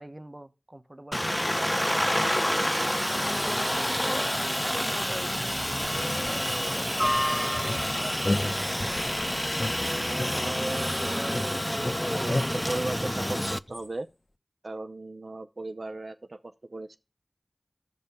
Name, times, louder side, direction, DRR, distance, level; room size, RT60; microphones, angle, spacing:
voice 1, 0.0-4.0 4.6-8.8, right 1 dB, 30° right, 0.7 m, -45 dB
Aircraft, 1.1-13.6, equal, 15° left, 0.4 m, -28 dB
sound 1, 4.5-10.4, left 1 dB, 90° left, 1.0 m, -48 dB
sound 2, 7.7-9.1 9.6-11.0 11.3-13.9, left 1 dB, 55° left, 0.8 m, -33 dB
voice 2, 10.1-11.5 12.1-14.1 14.6-17.0, right 2 dB, 80° right, 0.6 m, -37 dB
15.0 x 5.4 x 2.2 m
wide cardioid pair, 40°, 0 cm